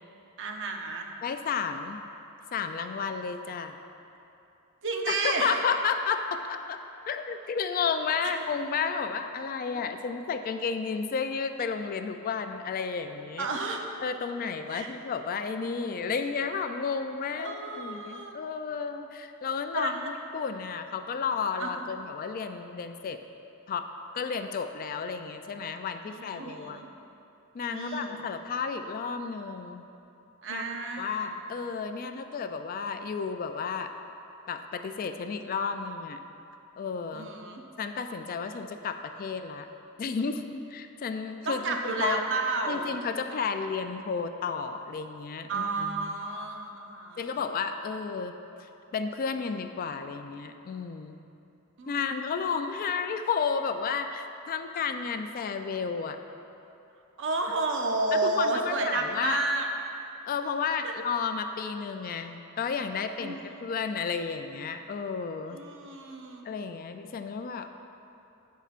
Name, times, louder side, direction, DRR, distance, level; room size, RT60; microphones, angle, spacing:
voice 1, 0.4-1.1 4.8-5.6 8.2-8.4 9.7-9.9 13.4-13.8 14.7-14.9 17.4-18.4 19.7-20.1 21.6-21.9 26.1-26.9 27.7-28.2 30.4-31.3 37.1-37.6 41.5-42.9 45.5-47.4 51.8-52.4 57.2-59.7 60.8-60.9 63.2-63.4 65.5-66.4, right 3 dB, 60° right, 2 dB, 0.7 m, -31 dB
voice 2, 1.2-2.0 2.5-3.7 5.1-6.8 7.1-13.5 14.0-23.2 23.7-23.9 24.1-26.8 27.5-29.8 30.5-30.6 31.0-33.9 34.5-36.2 36.8-37.3 37.8-39.7 40.0-42.2 42.7-46.1 47.2-48.7 48.9-51.2 51.9-56.2 58.1-59.4 60.3-63.4 63.6-65.6 66.4-67.7, left 5 dB, 40° left, 7 dB, 0.3 m, -32 dB
13.5 x 5.6 x 2.5 m, 2.8 s
head